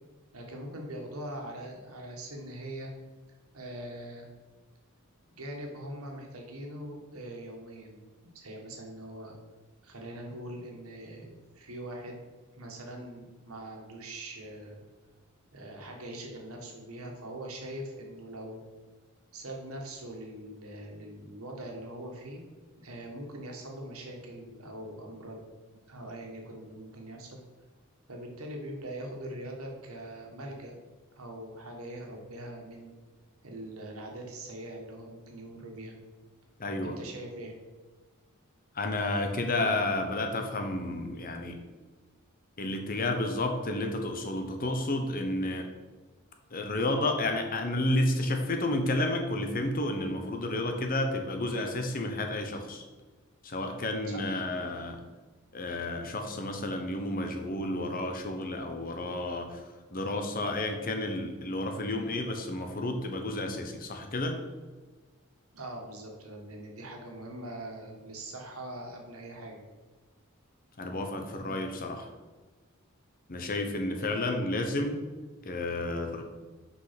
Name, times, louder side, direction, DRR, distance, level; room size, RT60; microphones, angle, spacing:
voice 1, 0.3-2.9 3.5-4.3 5.3-9.3 9.8-12.2 12.5-14.8 15.5-18.6 19.3-22.4 22.8-25.4 25.9-27.4 28.1-30.8 31.2-32.9 33.4-36.0 36.8-37.5 54.0-54.2 65.5-69.6 71.1-71.6 74.0-74.1, right 1 dB, 80° right, 1 dB, 1.8 m, -42 dB
voice 2, 36.6-37.0 38.7-41.6 42.6-45.7 46.5-52.8 53.4-55.0 55.5-59.6 59.9-64.4 70.8-72.1 73.3-75.0 75.4-76.2, left 2 dB, 40° left, 4 dB, 1.0 m, -31 dB
6.2 x 5.5 x 5.9 m, 1.3 s
head